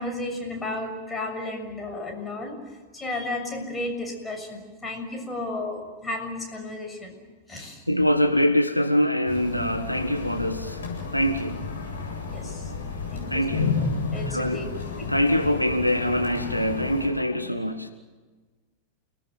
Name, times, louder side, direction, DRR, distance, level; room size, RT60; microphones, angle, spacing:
voice 1, 0.0-2.6 2.9-7.2 7.5-7.8 12.3-12.7 13.1-13.7 14.1-14.7 15.0-15.2, left 2 dB, 15° left, 2 dB, 6.8 m, -33 dB
voice 2, 7.9-10.8 11.1-11.6 13.3-13.7 14.3-14.7 15.0-17.9, equal, 90° left, 7 dB, 1.5 m, -24 dB
sound 1, 9.3-17.1, left 4 dB, 65° left, 7.8 m, -32 dB
29.5 x 19.5 x 7.7 m, 1.3 s
figure-of-eight pair, 90°, 0 cm